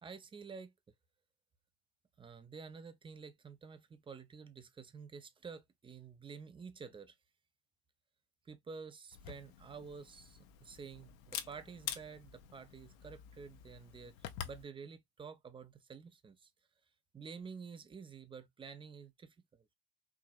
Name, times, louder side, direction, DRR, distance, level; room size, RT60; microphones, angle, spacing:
voice 1, 0.0-0.7 2.2-7.2 8.5-14.1 14.4-16.5 17.1-19.6, right 5 dB, 10° right, 0.5 m, -50 dB
Camera, 9.1-14.6, left 11 dB, 55° left, 0.9 m, -47 dB
4.7 x 2.8 x 2.4 m
hypercardioid pair, 105°, 48 cm